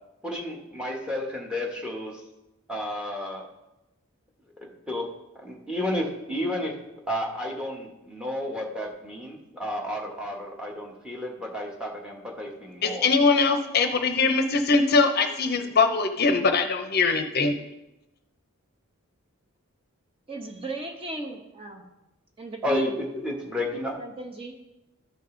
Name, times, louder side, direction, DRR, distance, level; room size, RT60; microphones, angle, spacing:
voice 1, 0.2-2.2 2.7-3.5 4.6-5.1 5.4-6.7 7.1-13.1 22.6-24.0, left 1 dB, 5° right, -1 dB, 1.3 m, -32 dB
voice 2, 12.8-17.5, left 4 dB, 45° left, 7 dB, 0.6 m, -22 dB
voice 3, 20.3-21.8 22.4-22.9 24.0-24.6, right 2 dB, 25° right, 3 dB, 0.9 m, -35 dB
13.5 x 5.2 x 3.8 m, 0.95 s
head